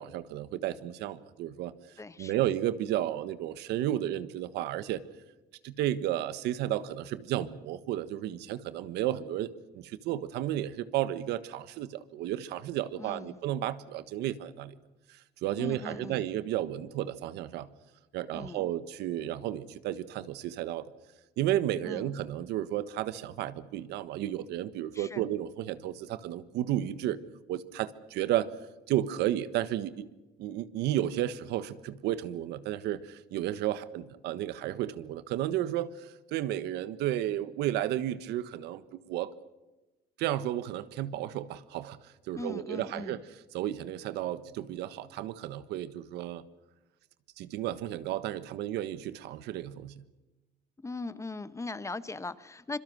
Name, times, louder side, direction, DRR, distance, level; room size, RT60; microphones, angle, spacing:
voice 1, 0.0-1.7 2.2-5.0 5.6-9.5 9.7-14.7 15.4-17.7 18.1-20.9 21.4-27.2 27.5-28.5 28.9-30.1 30.4-39.3 40.2-42.0 42.3-43.2 43.5-46.4 47.4-50.0, right 12 dB, 85° right, 14 dB, 1.4 m, -32 dB
voice 2, 2.0-2.4 12.9-13.4 15.6-16.3 18.3-18.6 21.8-22.1 24.9-25.3 42.3-43.2 50.8-52.8, left 3 dB, 15° left, 15 dB, 1.1 m, -39 dB
26.0 x 22.5 x 6.3 m, 1.1 s
cardioid pair, 110°, 17 cm